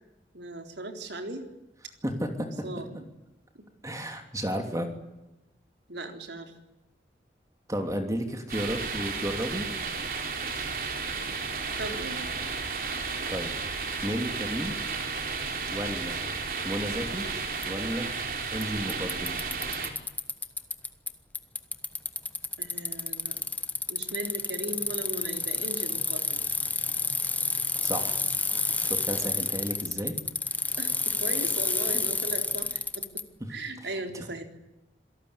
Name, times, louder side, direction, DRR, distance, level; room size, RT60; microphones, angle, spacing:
voice 1, 0.3-1.5 2.6-3.1 5.9-6.5 11.8-12.5 22.6-23.4 23.9-26.4 30.8-33.1 33.5-34.4, right 2 dB, 80° right, 5 dB, 3.9 m, -37 dB
voice 2, 2.0-2.7 3.8-4.9 7.7-9.7 13.3-13.5 14.0-14.8 15.7-16.2 16.6-17.3 17.7-18.1 18.5-19.4 27.8-28.2 28.8-30.2, equal, 20° right, 5 dB, 3.2 m, -32 dB
sound 1, 8.5-19.9, right 4 dB, 55° right, 4.2 m, -33 dB
Bicycle, 17.6-17.7 18.6-18.7 18.9-21.1 21.3-33.2, left 3 dB, 10° left, 1.2 m, -30 dB
27.0 x 18.0 x 10.0 m, 0.96 s
head